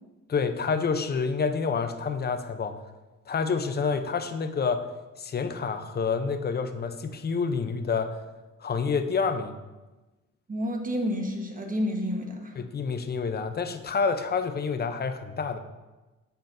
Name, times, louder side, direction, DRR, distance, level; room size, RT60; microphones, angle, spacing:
voice 1, 0.3-2.7 3.3-4.9 5.2-8.2 8.6-9.5 12.6-15.6, left 5 dB, 35° left, 8 dB, 0.7 m, -28 dB
voice 2, 10.5-12.5, equal, 25° right, 2 dB, 1.3 m, -29 dB
13.0 x 4.5 x 2.6 m, 1.1 s
cardioid pair, 90°, 30 cm